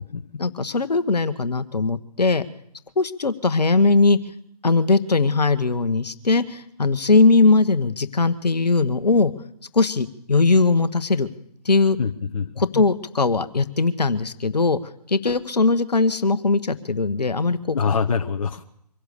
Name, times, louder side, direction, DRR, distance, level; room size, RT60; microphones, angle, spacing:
voice 1, 0.4-2.4 3.0-4.2 4.6-9.3 9.7-11.3 11.6-12.0 12.6-14.8 15.1-17.8, left 3 dB, 75° left, 12 dB, 1.3 m, -20 dB
voice 2, 12.0-12.8 17.7-18.6, left 6 dB, 55° left, 7 dB, 1.1 m, -25 dB
24.5 x 16.5 x 6.8 m, 0.72 s
figure-of-eight pair, 140°, 21 cm